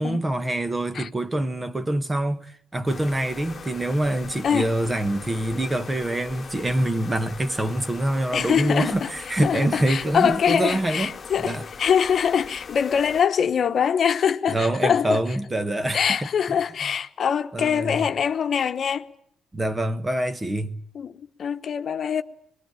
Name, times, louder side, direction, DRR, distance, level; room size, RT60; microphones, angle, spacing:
voice 1, 0.0-11.1 11.4-11.6 14.5-16.0 17.5-18.0 19.5-20.8, right 1 dB, 20° right, 1.4 m, -25 dB
sound 1, 2.9-13.2, left 5 dB, 40° left, 1.4 m, -40 dB
voice 2, 8.3-9.1 9.4-15.2 15.9-19.1 20.9-22.2, left 7 dB, 55° left, 1.1 m, -23 dB
22.5 x 22.0 x 9.1 m
cardioid pair, 90°, 0 cm